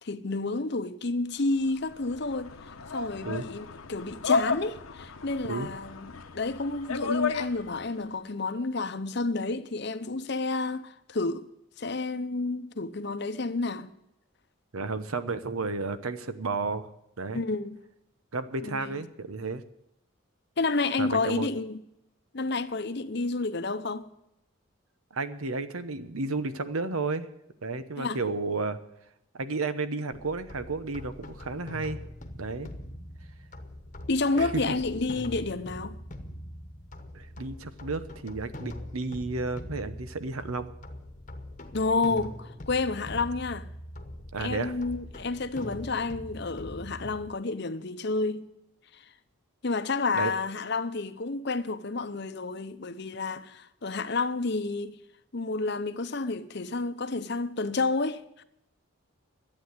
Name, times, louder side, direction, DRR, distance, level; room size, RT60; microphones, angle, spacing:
voice 1, 0.0-2.5 2.9-11.5 11.8-13.9 17.3-17.8 18.6-18.9 20.6-21.8 22.3-24.0 28.0-28.2 34.1-36.0 41.7-43.7 44.4-48.5 48.9-49.0 49.6-55.0 55.3-58.4, left 3 dB, 50° left, 0.8 m, -30 dB
sound 1, 1.6-8.0, left 4 dB, 85° left, 1.1 m, -33 dB
voice 2, 14.7-16.9 17.2-17.4 18.3-19.6 21.0-21.5 25.1-27.3 27.6-28.8 29.3-32.0 32.4-32.7 34.4-34.6 37.1-40.7 44.3-44.7 47.0-47.1 50.1-50.3, right 3 dB, 90° right, 1.0 m, -32 dB
sound 2, 30.1-47.3, left 1 dB, 35° left, 1.1 m, -42 dB
12.0 x 8.7 x 9.6 m
head